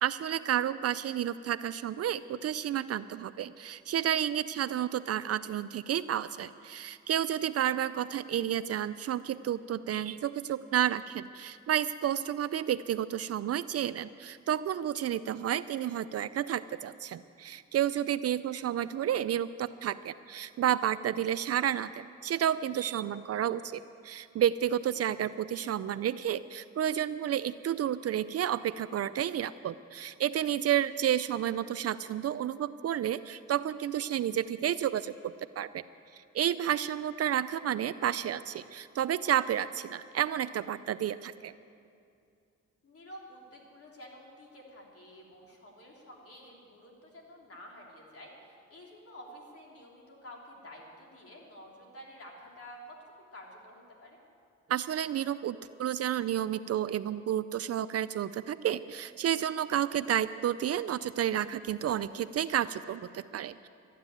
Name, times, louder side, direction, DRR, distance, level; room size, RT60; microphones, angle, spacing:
voice 1, 0.0-35.8 36.1-41.5 54.7-63.7, right 10 dB, 50° right, 15 dB, 0.4 m, -31 dB
voice 2, 42.8-53.0 53.3-54.2, equal, 45° left, -1 dB, 3.5 m, -50 dB
13.0 x 9.4 x 9.1 m, 2.4 s
cardioid pair, 80°, 32 cm